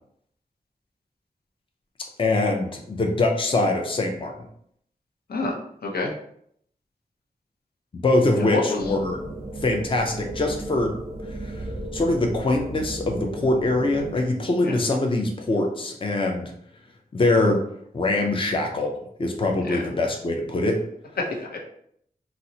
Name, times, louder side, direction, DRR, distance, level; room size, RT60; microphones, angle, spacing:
voice 1, 2.2-4.3 7.9-9.2 9.6-10.9 11.4-11.6 11.9-16.5 17.1-17.6 17.9-18.9 19.2-20.8, left 2 dB, 35° left, 2 dB, 0.5 m, -23 dB
voice 2, 8.4-8.8 14.6-14.8 19.6-19.8 21.2-21.6, left 3 dB, 80° left, 0 dB, 0.6 m, -27 dB
sound 1, 8.8-14.2, right 1 dB, 15° right, 0.6 m, -35 dB
3.8 x 2.0 x 2.7 m, 0.69 s
wide cardioid pair, 75°, 16 cm